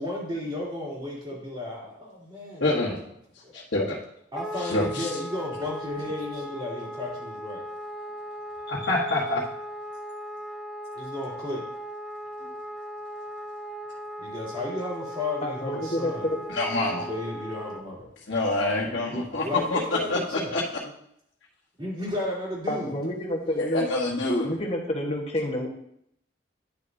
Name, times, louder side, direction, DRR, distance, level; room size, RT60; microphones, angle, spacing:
voice 1, 0.0-2.6 3.4-3.6 4.3-7.6 10.9-11.7 14.2-16.4 17.0-18.1 18.7-20.5 21.8-22.9, left 1 dB, 25° right, -6 dB, 3.2 m, -33 dB
voice 2, 2.6-3.0 3.5-4.0 4.7-5.1 8.7-9.4 16.5-17.1 18.3-19.8 20.1-20.2 20.5-20.6 23.6-24.5, left 2 dB, 85° left, -7 dB, 1.4 m, -26 dB
Wind instrument woodwind instrument, 4.3-17.8, equal, ahead, 0.3 m, -38 dB
voice 3, 15.4-16.4 18.7-19.2 22.7-23.9 24.4-25.7, left 1 dB, 35° left, 0 dB, 1.3 m, -29 dB
10.5 x 6.3 x 2.7 m, 0.73 s
head